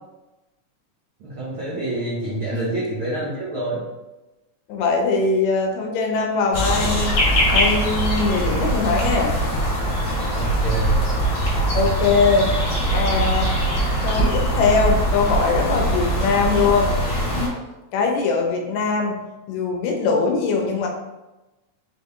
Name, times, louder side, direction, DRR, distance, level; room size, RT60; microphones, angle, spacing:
voice 1, 1.2-3.9 10.4-11.0, right 1 dB, 90° right, -7 dB, 1.1 m, -27 dB
voice 2, 4.7-9.3 11.7-12.5 12.9-13.7 14.0-16.9 17.9-19.2 19.5-20.9, left 4 dB, 75° left, 1 dB, 1.8 m, -21 dB
sound 1, 6.5-17.5, right 1 dB, 45° left, 1.5 m, -21 dB
5.0 x 3.4 x 2.7 m, 1.0 s
omnidirectional pair, 3.6 m